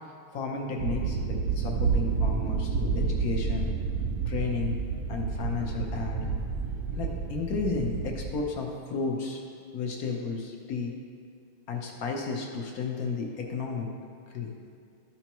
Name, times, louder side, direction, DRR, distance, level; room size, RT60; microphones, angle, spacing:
voice 1, 0.3-3.7 4.3-4.7 5.1-6.3 6.9-9.4 9.7-10.9 11.7-13.9 14.3-14.5, left 4 dB, 60° left, 0 dB, 1.0 m, -33 dB
sound 1, 0.8-8.4, right 5 dB, 75° right, 0.9 m, -29 dB
12.5 x 5.7 x 3.0 m, 2.3 s
omnidirectional pair, 2.4 m